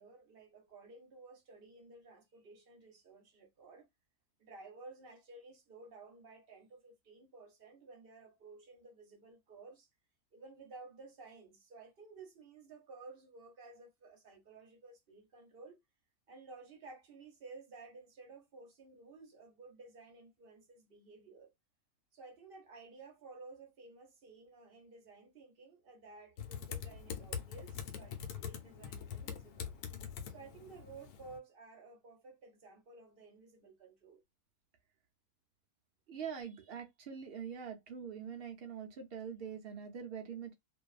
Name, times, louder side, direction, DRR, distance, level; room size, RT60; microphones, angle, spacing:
voice 1, 0.0-3.9 4.4-9.9 10.3-15.8 16.3-21.5 22.1-29.7 30.3-34.2, right 3 dB, 50° right, 0.7 m, -54 dB
Typing, 26.4-31.4, left 8 dB, 80° left, 1.1 m, -44 dB
voice 2, 36.1-40.5, right 7 dB, 80° right, 0.5 m, -44 dB
2.5 x 2.2 x 2.3 m
omnidirectional pair, 1.6 m